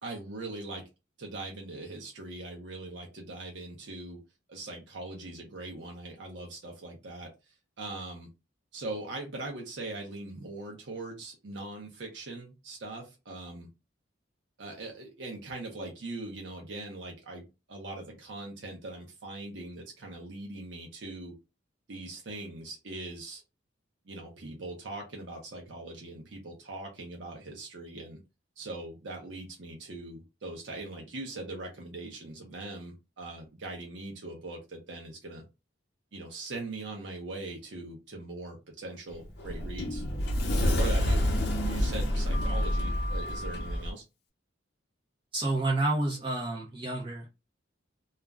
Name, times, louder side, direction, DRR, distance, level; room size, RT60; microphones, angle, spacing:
voice 1, 0.0-0.8 1.2-4.2 4.5-8.3 8.7-13.7 14.6-21.3 21.9-23.4 24.1-28.2 28.6-35.4 36.1-40.0 40.5-41.2 41.6-44.0, right 2 dB, 65° right, 0.6 m, -41 dB
Sliding door, 39.1-43.9, left 1 dB, 55° left, 0.6 m, -28 dB
voice 2, 45.3-47.3, right 2 dB, 25° right, 0.6 m, -29 dB
2.3 x 2.1 x 3.4 m
head